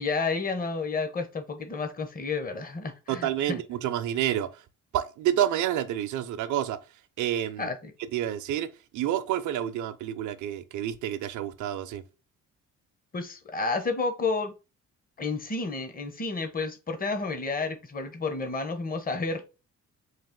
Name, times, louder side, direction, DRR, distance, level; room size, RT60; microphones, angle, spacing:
voice 1, 0.0-3.6 7.6-7.9 13.1-14.5 15.2-19.4, left 4 dB, 30° left, 1.0 m, -31 dB
voice 2, 3.1-4.6 4.9-6.8 7.2-7.7 8.1-8.7 8.9-12.0, right 11 dB, 75° right, 0.6 m, -29 dB
4.0 x 2.5 x 3.6 m
cardioid pair, 90°, 30 cm